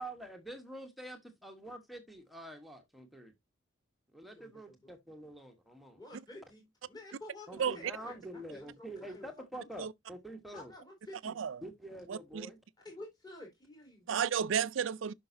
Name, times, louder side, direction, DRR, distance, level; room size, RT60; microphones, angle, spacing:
voice 1, 0.0-3.3 4.1-6.0 7.5-10.7 11.6-12.6, right 1 dB, ahead, 1.1 m, -46 dB
voice 2, 4.3-4.9 5.9-9.3 10.5-11.4 12.8-14.2 14.6-14.7, left 2 dB, 20° left, 3.6 m, -51 dB
voice 3, 11.2-11.6 12.1-12.5 14.1-15.1, right 7 dB, 75° right, 0.4 m, -32 dB
8.6 x 5.9 x 2.6 m
head